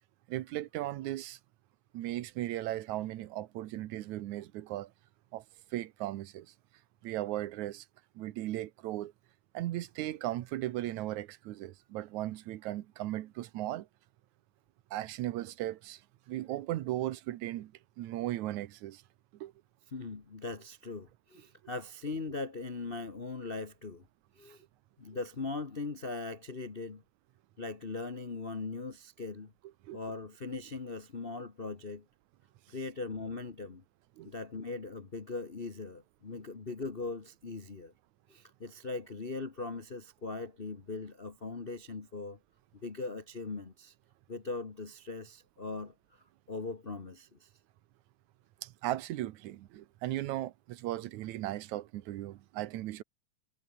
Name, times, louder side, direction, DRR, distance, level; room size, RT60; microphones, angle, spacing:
voice 1, 0.3-1.4 1.9-4.9 5.3-5.4 5.7-6.5 7.0-7.8 8.2-9.1 9.5-13.9 14.9-16.0 16.3-17.7 18.0-19.0 19.4-19.5 29.9-30.0 34.2-34.3 48.6-53.0, right 14 dB, 85° right, 2.3 m, -37 dB
voice 2, 19.9-24.0 24.4-24.6 25.0-27.0 27.6-29.5 29.9-32.0 32.7-33.8 34.2-37.9 38.3-42.4 42.8-43.9 44.3-47.5, left 3 dB, 50° left, 0.6 m, -40 dB
omnidirectional pair, 3.3 m